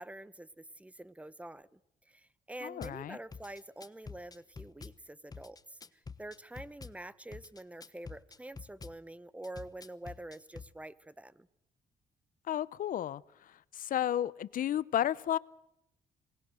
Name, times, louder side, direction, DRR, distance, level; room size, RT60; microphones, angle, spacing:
voice 1, 0.0-1.8 2.0-11.5, right 1 dB, 10° right, 18 dB, 1.0 m, -47 dB
voice 2, 2.6-3.2 12.5-15.4, left 11 dB, 65° left, 20 dB, 0.7 m, -33 dB
Drum kit / Bass drum, 2.8-3.0 3.3-5.0 5.3-7.0 7.3-9.0 9.4-10.7, left 4 dB, 25° left, 1.1 m, -47 dB
27.0 x 19.5 x 6.4 m, 0.84 s
cardioid pair, 75°, 15 cm